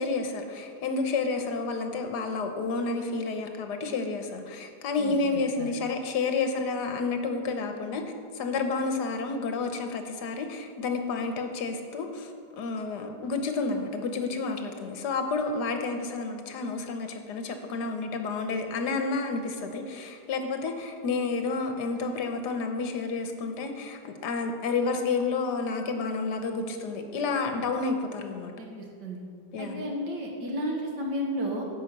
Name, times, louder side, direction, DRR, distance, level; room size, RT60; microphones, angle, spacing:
voice 1, 0.0-8.0 8.3-28.5 29.5-29.9, left 4 dB, 80° left, 6 dB, 1.5 m, -30 dB
voice 2, 28.6-29.2 29.6-31.6, equal, 85° right, 0 dB, 2.2 m, -32 dB
10.0 x 5.3 x 7.8 m, 2.2 s
omnidirectional pair, 1.8 m